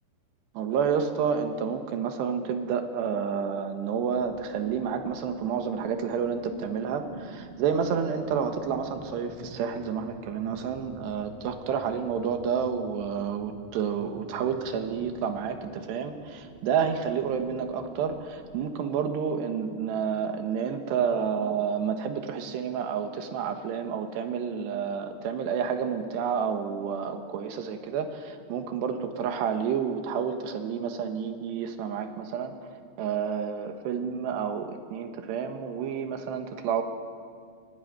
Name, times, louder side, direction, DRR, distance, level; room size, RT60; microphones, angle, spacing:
voice 1, 0.6-32.6 33.0-36.8, right 7 dB, 90° right, 6 dB, 3.6 m, -30 dB
sound 1, 3.9-18.3, right 2 dB, 50° right, 5.0 m, -48 dB
22.5 x 18.0 x 9.4 m, 2.1 s
omnidirectional pair, 4.8 m